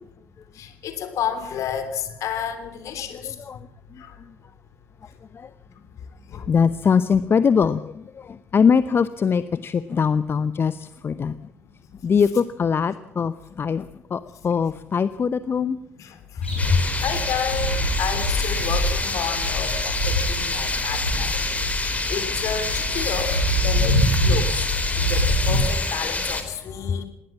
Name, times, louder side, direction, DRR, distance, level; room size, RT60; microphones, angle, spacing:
voice 1, 0.6-3.3 4.0-4.1 6.3-6.5 7.1-7.2 15.6-15.7 16.0-16.2 17.0-17.7 18.0-21.4 21.8-24.7 24.9-27.1, left 8 dB, 60° left, 8 dB, 3.2 m, -31 dB
voice 2, 6.3-11.4 12.0-15.8 16.7-16.8, left 6 dB, 40° left, 15 dB, 0.8 m, -22 dB
sound 1, 16.4-25.6, equal, 90° left, 4.1 m, -25 dB
sound 2, 16.6-26.4, left 3 dB, 25° left, 3.7 m, -27 dB
20.5 x 18.0 x 7.3 m, 0.84 s
figure-of-eight pair, 45°, 6 cm